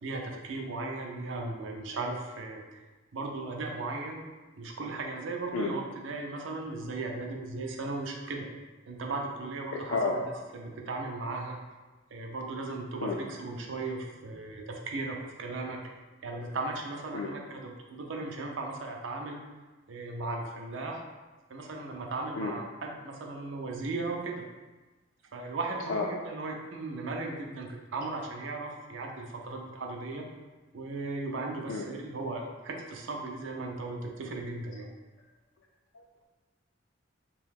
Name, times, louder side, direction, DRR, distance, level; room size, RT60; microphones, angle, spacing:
voice 1, 0.0-2.6 3.1-4.2 4.6-8.5 8.9-10.2 10.5-11.6 12.1-15.8 16.2-19.4 19.9-21.0 21.5-24.5 25.3-30.3 30.7-34.9, right 3 dB, 75° right, 1 dB, 0.5 m, -36 dB
voice 2, 5.5-5.7 9.9-10.1 13.0-13.2 17.1-17.3 22.4-22.5 25.9-26.0 31.7-31.8, left 4 dB, 80° left, -1 dB, 0.3 m, -30 dB
2.7 x 2.3 x 3.4 m, 1.2 s
head